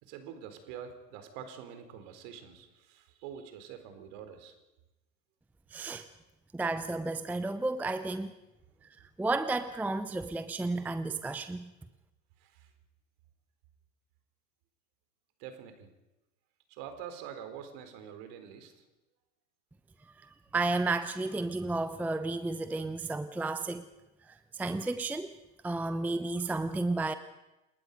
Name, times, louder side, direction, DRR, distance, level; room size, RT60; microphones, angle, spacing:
voice 1, 0.0-4.5 12.4-12.7 15.4-15.9 16.7-18.8, right 8 dB, 50° right, 8 dB, 3.9 m, -46 dB
voice 2, 5.7-6.1 6.5-8.3 9.2-11.7 20.2-23.8 24.3-25.4 25.6-27.1, right 2 dB, 5° right, 13 dB, 0.6 m, -32 dB
28.5 x 19.5 x 5.3 m, 0.99 s
figure-of-eight pair, 90°, 49 cm